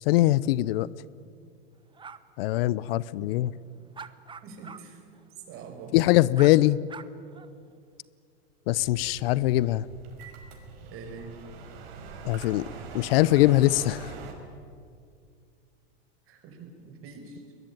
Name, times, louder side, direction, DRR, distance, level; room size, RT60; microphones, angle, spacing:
voice 1, 0.0-0.9 2.4-3.5 5.9-6.8 8.7-9.9 12.2-12.7 12.9-14.1, left 16 dB, 65° left, 21 dB, 0.7 m, -22 dB
sound 1, 1.9-2.2 4.0-4.8 5.1-5.2 6.4-6.5 6.9-7.5, right 6 dB, 15° right, 1.0 m, -43 dB
voice 2, 4.4-5.0 5.5-5.9 10.9-11.4 16.3-17.4, right 5 dB, 45° right, 5 dB, 5.9 m, -44 dB
sound 2, 8.8-14.3, right 5 dB, 65° right, 5.6 m, -43 dB
23.5 x 21.0 x 9.1 m, 2.3 s
hypercardioid pair, 115°, 32 cm